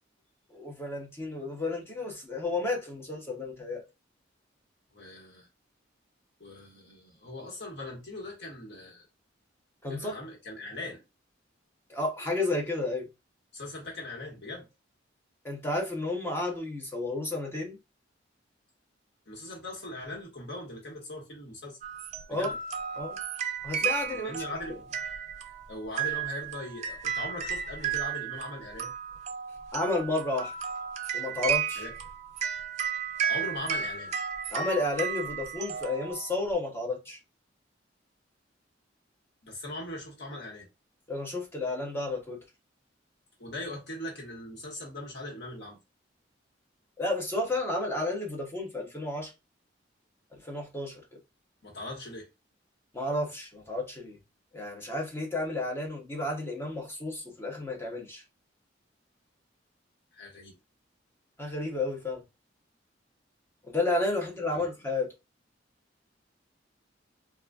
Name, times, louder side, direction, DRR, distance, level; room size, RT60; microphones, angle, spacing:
voice 1, 0.5-3.8 9.8-10.1 11.9-13.1 15.4-17.8 22.3-22.5 23.0-23.2 23.6-24.6 29.7-30.5 31.1-31.9 34.5-37.2 41.1-42.4 47.0-49.3 50.3-51.0 52.9-54.2 54.5-58.2 61.4-62.2 63.7-65.1, left 2 dB, 15° left, 0.8 m, -32 dB
voice 2, 4.9-5.5 6.4-9.1 9.9-11.0 13.5-14.6 19.3-21.8 22.3-22.5 24.1-24.7 25.7-28.9 31.8-31.9 33.3-34.1 39.4-40.7 43.4-45.8 51.6-52.3 60.1-60.5 64.5-64.7, left 1 dB, 60° left, 1.3 m, -40 dB
sound 1, 21.8-36.5, right 7 dB, 35° right, 0.4 m, -34 dB
3.8 x 2.3 x 2.3 m
head